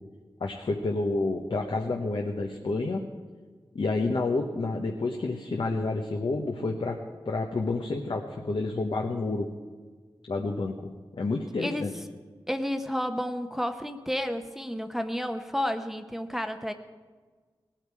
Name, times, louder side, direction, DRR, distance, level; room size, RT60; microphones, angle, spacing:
voice 1, 0.4-3.0 3.7-7.0 7.3-9.5 10.3-10.8 11.1-11.9, left 3 dB, 65° left, 1 dB, 1.0 m, -29 dB
voice 2, 11.6-11.9 12.5-16.7, equal, 5° right, 7 dB, 0.8 m, -31 dB
18.0 x 8.9 x 4.8 m, 1.5 s
cardioid pair, 45°, 9 cm